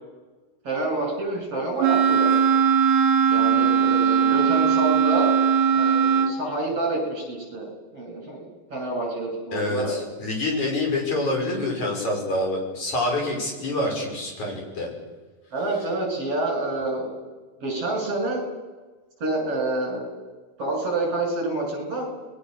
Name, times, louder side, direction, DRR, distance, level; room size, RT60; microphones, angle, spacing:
voice 1, 0.6-2.3 3.3-5.4 5.7-10.0 15.5-17.1 17.6-18.4 19.2-20.0 20.6-22.1, right 2 dB, 40° right, 1 dB, 8.5 m, -28 dB
Wind instrument woodwind instrument, 1.8-6.4, right 7 dB, 70° right, 3.4 m, -19 dB
voice 2, 9.5-14.9, left 2 dB, 50° left, 0 dB, 7.1 m, -26 dB
28.5 x 21.5 x 6.8 m, 1.3 s
omnidirectional pair, 4.3 m